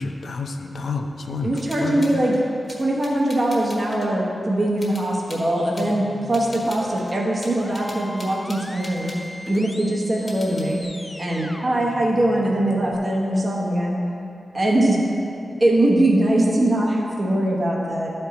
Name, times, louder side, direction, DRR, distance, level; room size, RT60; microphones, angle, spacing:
voice 1, 0.0-2.2, left 3 dB, 65° left, 5 dB, 0.5 m, -29 dB
voice 2, 1.4-2.4 2.8-9.1 9.5-10.8 11.2-14.0 14.5-15.0 15.6-18.1, right 1 dB, 30° right, -3 dB, 1.0 m, -21 dB
sound 1, 1.5-4.1 4.8-5.9 6.3-9.6 10.2-10.8, left 1 dB, 35° left, 1.4 m, -42 dB
sound 2, 5.8-12.9, left 1 dB, 10° left, 0.4 m, -40 dB
12.0 x 4.5 x 4.1 m, 2.8 s
wide cardioid pair, 145°, 0 cm